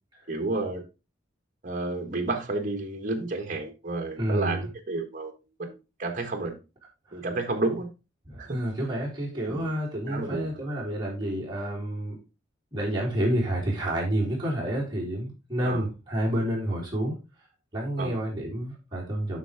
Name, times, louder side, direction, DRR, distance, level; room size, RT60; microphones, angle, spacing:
voice 1, 0.3-0.8 1.6-5.3 5.6-6.6 7.1-7.9 8.4-8.6 9.5-9.7 10.1-10.5 15.6-15.9 18.0-18.2, right 2 dB, 40° right, 1.5 m, -31 dB
voice 2, 4.2-4.6 7.1-7.3 8.2-12.2 12.7-17.2 17.7-19.4, right 1 dB, 20° right, 3.8 m, -29 dB
9.1 x 5.8 x 3.5 m
head